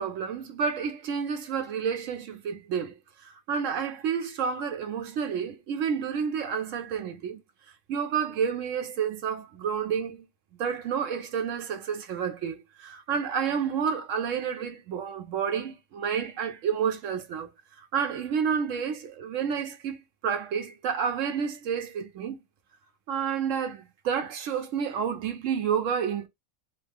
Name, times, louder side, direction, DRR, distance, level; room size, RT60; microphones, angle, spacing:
voice 1, 0.0-7.4 7.9-10.3 10.6-17.5 17.8-22.4 23.1-26.3, right 7 dB, 70° right, 0.9 m, -30 dB
2.9 x 2.0 x 3.4 m
omnidirectional pair, 1.5 m